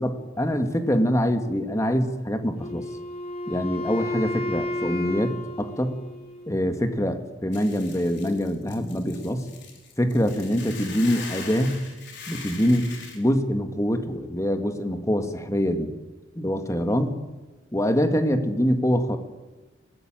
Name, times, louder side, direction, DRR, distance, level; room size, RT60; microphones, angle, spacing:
voice 1, 0.0-2.9 3.5-6.0 6.5-9.5 10.0-11.8 12.3-15.9 16.4-17.1 17.7-19.2, equal, 15° left, 6 dB, 1.9 m, -24 dB
Wind instrument woodwind instrument, 2.6-6.6, left 1 dB, 35° left, 2.7 m, -32 dB
Hiss / Boiling, 7.5-13.2, left 5 dB, 60° left, 5.0 m, -41 dB
22.0 x 16.5 x 9.0 m, 1.2 s
head